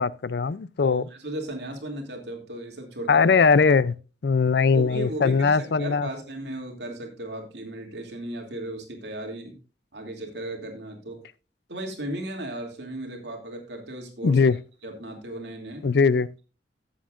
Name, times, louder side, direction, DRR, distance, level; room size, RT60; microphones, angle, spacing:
voice 1, 0.0-1.0 3.1-3.9 4.2-6.1 14.2-14.6 15.8-16.3, left 5 dB, 65° left, 0.4 m, -20 dB
voice 2, 0.8-3.3 4.7-9.6 9.9-11.2 11.7-14.5 14.8-15.9, right 1 dB, 70° right, 2.7 m, -36 dB
15.0 x 7.8 x 2.5 m
head